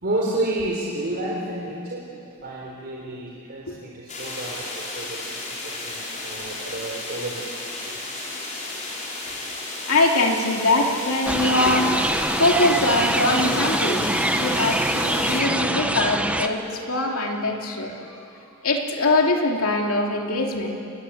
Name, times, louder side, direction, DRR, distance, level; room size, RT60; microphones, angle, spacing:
voice 1, 0.0-5.6 5.8-7.4 7.8-8.0 11.6-11.7, right 1 dB, 50° right, -3 dB, 3.8 m, -30 dB
sound 1, 4.1-15.4, left 2 dB, 35° left, 5.4 m, -33 dB
voice 2, 9.9-11.8 12.4-18.2 18.6-20.8, left 2 dB, 70° left, 1 dB, 3.0 m, -22 dB
sound 2, 11.3-16.5, right 1 dB, 5° right, 1.0 m, -24 dB
29.5 x 20.5 x 8.7 m, 2.6 s
head